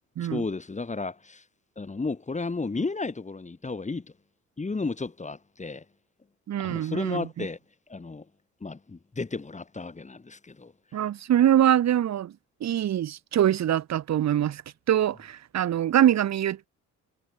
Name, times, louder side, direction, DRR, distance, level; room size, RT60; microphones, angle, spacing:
voice 1, 0.3-1.4 1.8-4.1 4.6-5.8 6.6-7.6 7.9-8.3 8.6-10.7, left 3 dB, 25° left, 4.1 m, -33 dB
voice 2, 6.5-7.5 10.9-12.3 12.6-14.6 14.9-16.7, right 11 dB, 60° right, 1.6 m, -24 dB
cardioid pair, 90°, 30 cm